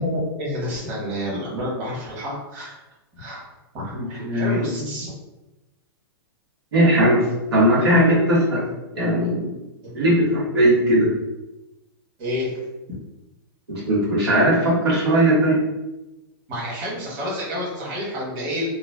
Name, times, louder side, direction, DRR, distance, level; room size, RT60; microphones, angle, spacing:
voice 1, 0.0-2.8 3.2-3.5 3.7-5.1 9.8-10.1 12.2-12.6 16.5-18.7, left 1 dB, 35° right, -5 dB, 1.3 m, -29 dB
voice 2, 3.9-4.9 6.7-7.2 7.5-8.6 8.9-9.5 9.9-11.1 13.7-15.6, right 1 dB, 85° right, -7 dB, 1.3 m, -19 dB
3.0 x 2.2 x 2.3 m, 0.99 s
hypercardioid pair, 135°, 13 cm